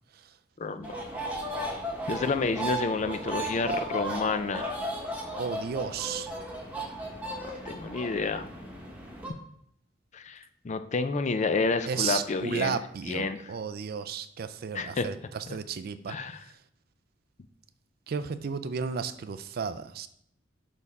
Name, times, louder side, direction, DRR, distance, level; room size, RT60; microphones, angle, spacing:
voice 1, 0.6-0.9 2.1-4.8 7.5-8.5 10.1-10.4 10.6-12.8 13.1-13.5 14.7-15.1 15.5-15.6 16.1-16.4, left 4 dB, 40° left, 10 dB, 0.4 m, -29 dB
sound 1, 0.8-9.3, right 1 dB, 10° right, 1.1 m, -35 dB
voice 2, 5.4-6.3 11.9-16.1 18.1-20.1, right 6 dB, 55° right, 13 dB, 0.4 m, -33 dB
6.3 x 3.6 x 5.3 m, 0.70 s
head